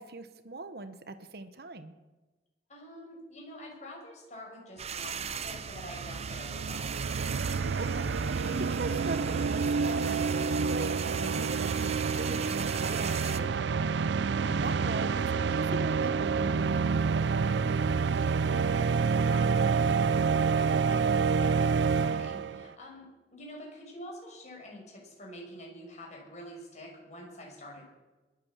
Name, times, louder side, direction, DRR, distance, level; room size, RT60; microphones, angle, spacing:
voice 1, 0.0-1.9 7.7-8.1 8.5-10.9 11.2-13.7 14.4-17.5, right 2 dB, 60° right, 10 dB, 1.0 m, -41 dB
voice 2, 2.7-7.0 18.1-27.8, left 1 dB, 40° left, -1 dB, 5.8 m, -47 dB
sound 1, 4.8-13.4, right 7 dB, 35° right, 0.8 m, -39 dB
sound 2, 4.9-5.0 5.2-22.7, right 5 dB, 85° right, 0.5 m, -28 dB
22.0 x 8.7 x 7.4 m, 1.2 s
head